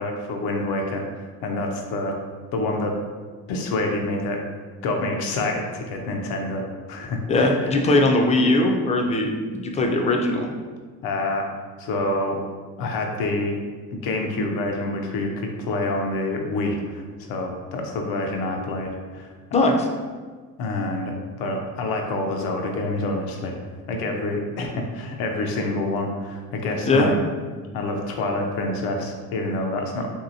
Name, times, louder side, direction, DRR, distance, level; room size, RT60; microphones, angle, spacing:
voice 1, 0.0-2.2 2.5-2.9 3.5-4.4 4.8-6.6 6.9-8.0 11.0-11.5 11.8-12.4 12.8-13.6 13.9-19.3 20.6-23.6 23.9-27.2 27.7-30.1, left 2 dB, 90° left, 2 dB, 0.6 m, -27 dB
voice 2, 7.3-10.5 19.5-19.9 26.9-27.1, left 2 dB, 20° left, 2 dB, 0.4 m, -20 dB
2.9 x 2.8 x 2.7 m, 1.5 s
cardioid pair, 95°, 35 cm